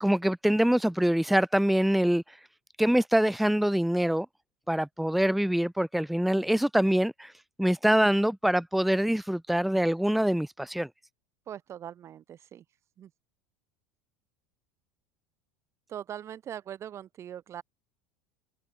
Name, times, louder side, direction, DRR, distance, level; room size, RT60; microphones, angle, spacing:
voice 1, 0.0-2.2 2.8-4.3 4.7-7.3 7.6-10.9, equal, ahead, 1.0 m, -24 dB
voice 2, 11.5-12.6 13.0-13.1 15.9-17.6, right 10 dB, 35° right, 1.2 m, -41 dB
supercardioid pair, 110°, 8 cm